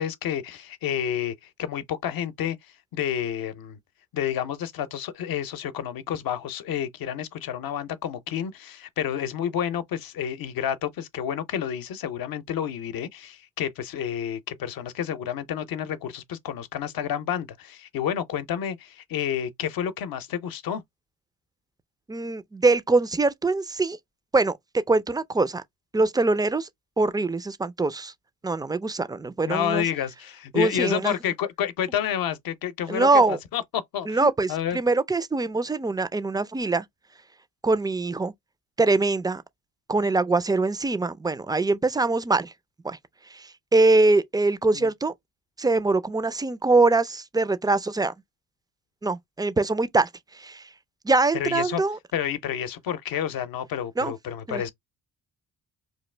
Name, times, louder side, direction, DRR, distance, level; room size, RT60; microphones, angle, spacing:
voice 1, 0.0-2.6 2.9-3.8 4.1-20.8 29.4-34.8 44.7-44.9 51.3-51.8 52.1-54.7, left 9 dB, 65° left, 0.7 m, -29 dB
voice 2, 22.1-24.0 24.3-24.6 24.9-25.6 25.9-26.7 27.0-28.1 28.4-29.9 30.5-31.1 32.9-33.4 34.1-36.8 37.6-38.3 38.8-39.4 39.9-42.5 42.8-43.0 43.3-45.1 45.6-48.1 49.0-50.1 50.4-50.6 51.0-52.0 54.0-54.1 54.5-54.6, right 3 dB, 10° right, 0.3 m, -23 dB
2.9 x 2.4 x 3.2 m
cardioid pair, 70°, 37 cm